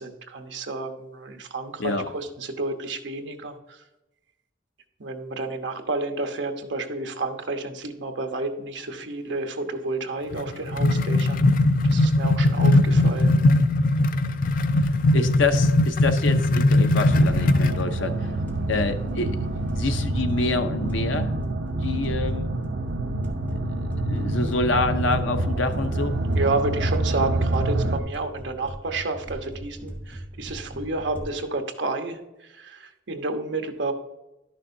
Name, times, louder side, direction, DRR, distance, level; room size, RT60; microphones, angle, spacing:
voice 1, 0.0-3.8 5.0-11.4 11.9-13.4 26.3-33.9, right 2 dB, 70° right, 5 dB, 1.0 m, -30 dB
sound 1, 10.3-17.8, left 2 dB, 45° left, 0.4 m, -20 dB
sound 2, 14.4-31.2, right 1 dB, 10° left, 1.2 m, -39 dB
voice 2, 14.8-18.3 18.7-19.4 19.8-21.3 21.8-22.5 23.8-26.2, left 3 dB, 80° left, 7 dB, 0.8 m, -27 dB
sound 3, 17.0-28.0, right 2 dB, 85° right, 0.7 m, -27 dB
11.0 x 6.4 x 2.7 m, 0.97 s
head